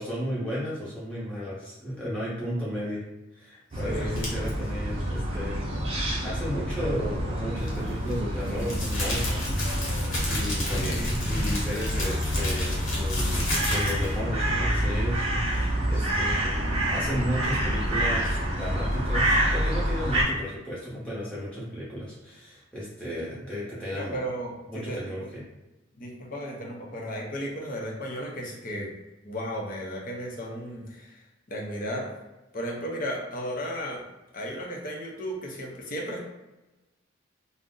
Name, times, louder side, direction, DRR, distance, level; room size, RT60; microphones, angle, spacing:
voice 1, 0.0-3.0 3.3-5.7 6.2-10.0 10.2-16.5 16.9-24.2 24.7-25.4, equal, 5° left, -9 dB, 0.9 m, -34 dB
voice 2, 3.7-4.1 10.8-11.1 23.9-25.0 26.0-28.9 29.2-31.2 31.5-32.1 32.5-34.1 34.3-36.2, equal, 45° left, -1 dB, 0.6 m, -34 dB
sound 1, 3.7-20.2, equal, 30° right, 0.7 m, -27 dB
sound 2, 4.2-4.5 7.6-14.2, left 1 dB, 90° left, 1.0 m, -32 dB
2.6 x 2.0 x 3.6 m, 1.0 s
head